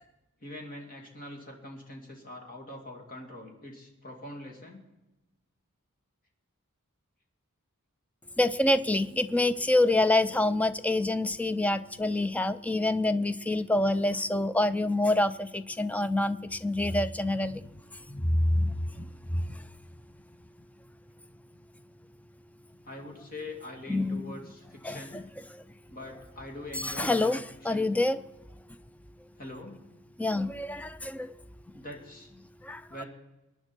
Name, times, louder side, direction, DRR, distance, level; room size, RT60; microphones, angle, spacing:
voice 1, 0.4-4.8 22.8-25.2 25.9-27.4 27.7-27.9 29.4-29.8 31.7-32.3 32.9-33.1, left 1 dB, 40° left, 2 dB, 2.6 m, -43 dB
voice 2, 8.4-17.7 18.1-19.6 23.9-24.3 24.8-25.2 25.5-25.6 26.8-27.4 27.6-28.2 30.2-31.3 32.6-33.0, left 2 dB, 5° left, 13 dB, 0.4 m, -27 dB
23.0 x 10.0 x 4.5 m, 1.0 s
head